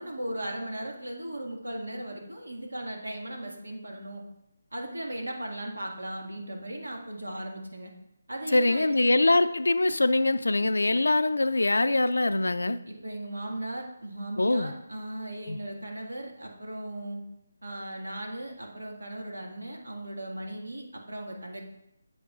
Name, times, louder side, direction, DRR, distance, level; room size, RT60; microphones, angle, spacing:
voice 1, 0.0-4.2 4.7-7.9 8.3-9.2 12.9-17.2 17.6-21.6, right 1 dB, 85° right, 1 dB, 1.9 m, -37 dB
voice 2, 8.5-12.8 14.4-14.7 15.5-15.6, left 2 dB, 85° left, 12 dB, 0.4 m, -23 dB
8.5 x 7.6 x 2.5 m, 0.81 s
figure-of-eight pair, 160°, 0 cm